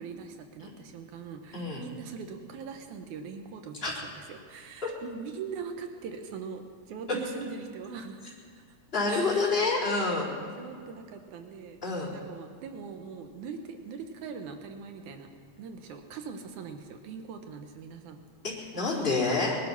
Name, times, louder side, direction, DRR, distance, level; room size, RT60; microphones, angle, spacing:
voice 1, 0.0-8.2 8.6-8.7 9.1-9.6 10.6-11.8 12.1-18.2, right 5 dB, 90° right, 6 dB, 2.5 m, -41 dB
voice 2, 1.5-1.8 3.8-3.9 4.8-4.9 8.9-10.3 11.8-12.1 18.4-19.6, left 3 dB, 20° left, -6 dB, 4.0 m, -28 dB
20.5 x 12.0 x 5.9 m, 2.2 s
omnidirectional pair, 3.4 m